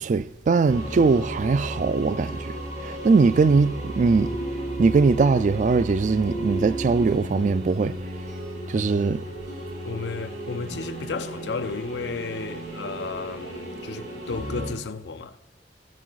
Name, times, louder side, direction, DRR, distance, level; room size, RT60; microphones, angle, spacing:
voice 1, 0.0-2.6 2.8-4.4 4.8-8.0 8.7-9.2, right 4 dB, 45° right, 0.3 m, -21 dB
sound 1, 0.7-14.7, right 1 dB, 85° right, 4.2 m, -34 dB
voice 2, 9.8-15.4, left 4 dB, 80° left, 0.6 m, -33 dB
19.0 x 6.5 x 4.0 m
head